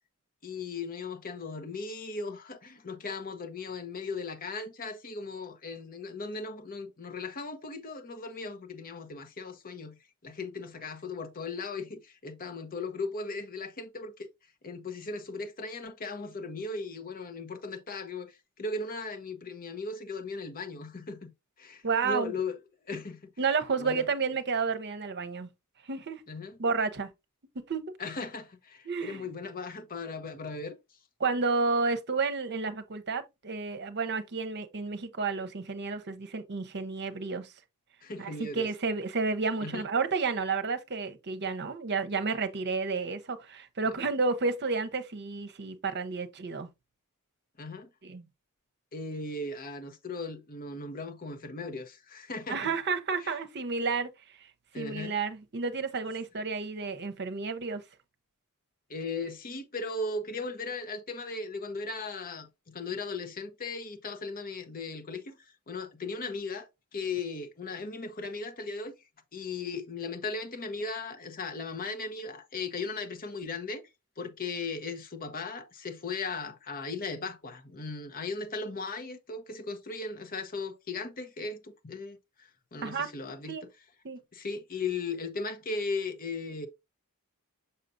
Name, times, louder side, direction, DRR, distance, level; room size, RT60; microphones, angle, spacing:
voice 1, 0.4-14.3 14.6-21.3 21.6-22.6 22.9-23.3 23.8-24.1 26.3-26.6 28.0-30.8 38.0-38.7 39.6-39.9 47.6-47.9 48.9-52.7 53.2-53.3 54.7-55.1 58.9-68.9 69.3-73.8 74.2-83.5 84.3-86.7, left 3 dB, 40° left, 0.8 m, -37 dB
voice 2, 21.8-22.3 23.4-25.5 25.9-26.2 26.6-27.1 27.7-27.8 28.9-29.2 31.2-37.5 38.2-46.7 48.0-48.2 52.5-54.1 54.8-57.8 82.8-83.1 83.5-83.6 84.0-84.2, right 4 dB, 50° right, 0.8 m, -31 dB
6.6 x 5.6 x 2.6 m
head